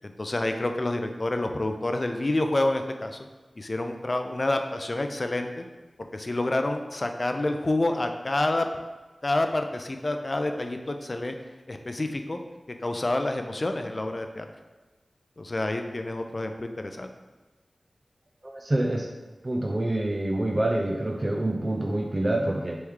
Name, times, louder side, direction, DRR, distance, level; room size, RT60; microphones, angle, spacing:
voice 1, 0.0-3.3 3.6-5.7 6.1-8.7 9.2-11.3 11.7-12.4 12.8-14.5 15.4-17.1, left 2 dB, 40° left, 6 dB, 0.4 m, -28 dB
voice 2, 18.4-19.1 19.4-22.8, right 1 dB, 35° right, 1 dB, 0.4 m, -26 dB
3.5 x 3.1 x 4.7 m, 1.2 s
wide cardioid pair, 65°, 0 cm